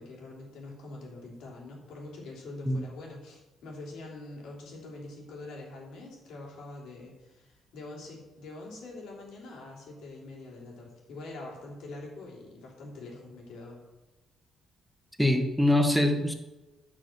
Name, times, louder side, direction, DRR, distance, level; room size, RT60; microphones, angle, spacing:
voice 1, 0.0-13.8, left 2 dB, 85° left, -2 dB, 3.2 m, -44 dB
voice 2, 15.2-16.3, left 1 dB, ahead, 5 dB, 1.4 m, -24 dB
10.0 x 6.3 x 5.9 m, 1.1 s
cardioid pair, 90°, 0 cm